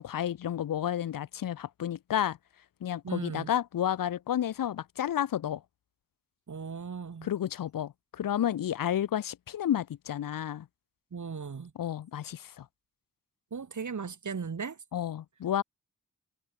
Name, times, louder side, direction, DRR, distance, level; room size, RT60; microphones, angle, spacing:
voice 1, 0.0-2.4 2.8-5.6 7.2-10.7 11.8-12.7 14.9-15.6, left 10 dB, 90° left, 0.7 m, -31 dB
voice 2, 3.0-3.5 6.5-7.3 11.1-11.7 13.5-14.8, right 5 dB, 60° right, 5.0 m, -37 dB
wide cardioid pair, 90°, 33 cm